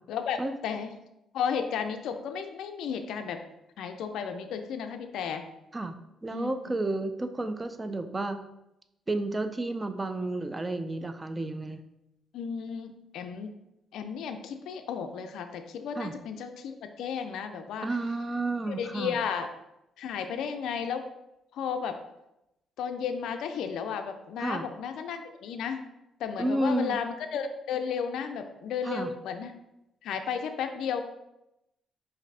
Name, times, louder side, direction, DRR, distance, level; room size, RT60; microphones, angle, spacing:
voice 1, 0.1-0.9 1.3-3.4 3.8-5.4 6.3-6.5 12.3-13.5 13.9-17.9 18.7-19.5 20.0-21.0 21.5-22.0 22.8-25.8 26.2-29.6 30.0-31.0, left 7 dB, 80° left, 7 dB, 0.3 m, -33 dB
voice 2, 5.7-8.4 9.1-11.8 16.0-16.2 17.8-19.1 24.4-24.7 26.4-27.0 28.8-29.1, right 2 dB, 20° right, 8 dB, 0.4 m, -31 dB
4.8 x 2.6 x 3.3 m, 0.88 s
cardioid pair, 90°, 0 cm